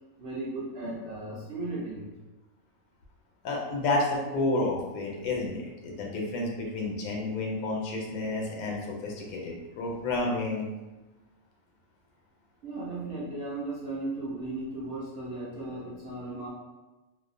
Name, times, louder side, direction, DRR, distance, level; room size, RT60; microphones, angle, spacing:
voice 1, 0.2-2.1 9.2-9.4 12.6-16.5, right 2 dB, 65° right, -6 dB, 0.6 m, -36 dB
voice 2, 3.4-10.7, left 2 dB, 85° left, -1 dB, 1.0 m, -30 dB
2.6 x 2.0 x 2.4 m, 1.1 s
omnidirectional pair, 1.5 m